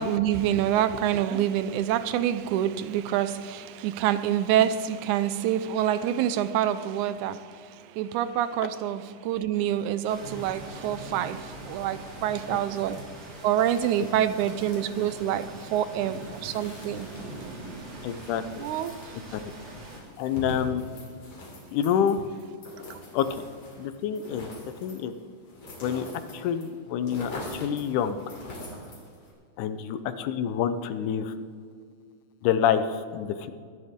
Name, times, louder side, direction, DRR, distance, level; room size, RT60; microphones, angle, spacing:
voice 1, 0.0-13.0 13.4-17.1 18.6-18.9 22.9-23.0, right 10 dB, 80° right, 2.0 m, -27 dB
sound 1, 10.1-20.0, right 2 dB, 55° right, 3.2 m, -42 dB
sound 2, 13.6-26.7 26.9-29.3, left 1 dB, 50° left, 3.9 m, -43 dB
voice 2, 18.0-18.6 19.3-19.5 20.2-20.8 21.7-22.3 23.1-23.4 23.8-24.5 24.8-25.1 25.8-26.1 26.3-28.2 29.6-31.3 32.4-33.5, left 8 dB, 80° left, 2.2 m, -27 dB
22.5 x 11.0 x 3.6 m
omnidirectional pair, 3.6 m